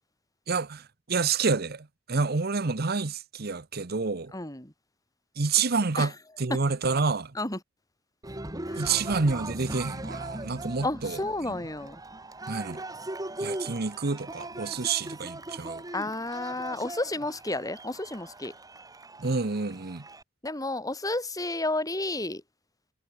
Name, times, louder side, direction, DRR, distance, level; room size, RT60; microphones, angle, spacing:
voice 1, 0.5-4.3 5.4-6.1 6.4-7.3 8.7-11.6 12.5-12.8 13.4-15.8 19.2-20.0, right 4 dB, 55° right, 1.0 m, -28 dB
voice 2, 4.3-4.7 6.0-6.1 6.5-6.6 7.3-7.6 8.7-8.8 10.8-12.0 15.9-18.5 20.4-22.4, left 2 dB, 20° left, 4.8 m, -31 dB
Cheering, 8.2-20.2, right 1 dB, 20° right, 2.7 m, -39 dB
head